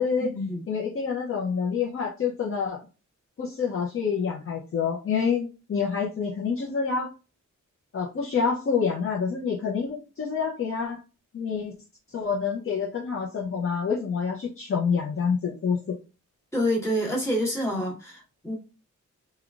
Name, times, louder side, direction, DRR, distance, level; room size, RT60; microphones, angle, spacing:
voice 1, 0.0-0.3 0.7-2.8 3.4-7.1 7.9-11.0 11.3-11.7 12.1-16.0, left 6 dB, 45° left, -3 dB, 0.6 m, -27 dB
voice 2, 16.5-18.5, equal, 10° left, -5 dB, 1.4 m, -27 dB
3.7 x 2.2 x 2.4 m, 0.32 s
wide cardioid pair, 170°, 31 cm